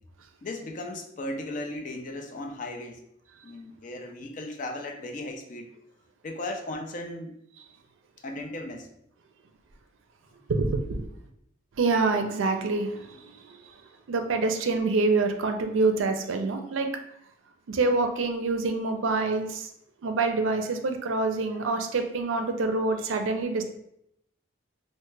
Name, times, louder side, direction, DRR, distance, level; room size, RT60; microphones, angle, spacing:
voice 1, 0.4-3.0 3.4-5.7 6.2-7.3 8.2-8.9, left 1 dB, 40° left, 3 dB, 0.4 m, -36 dB
voice 2, 10.6-11.1 11.8-13.4 14.1-17.0 17.7-19.7 20.0-23.6, right 3 dB, 85° right, 6 dB, 0.4 m, -26 dB
3.2 x 2.1 x 3.1 m, 0.76 s
head